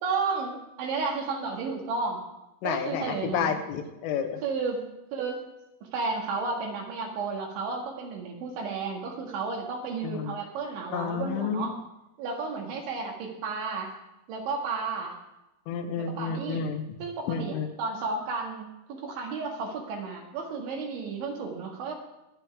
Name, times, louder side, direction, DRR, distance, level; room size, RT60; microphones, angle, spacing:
voice 1, 0.0-2.2 2.6-3.6 4.4-4.8 5.1-5.4 5.8-11.8 12.2-13.9 14.3-15.2 16.0-16.7 17.0-21.9, right 4 dB, 70° right, 1 dB, 4.1 m, -32 dB
voice 2, 2.6-4.4 10.0-10.3 10.9-11.7 15.7-16.9 17.3-17.7, left 7 dB, 85° left, 6 dB, 3.7 m, -30 dB
23.5 x 9.2 x 3.6 m, 0.93 s
omnidirectional pair, 5.6 m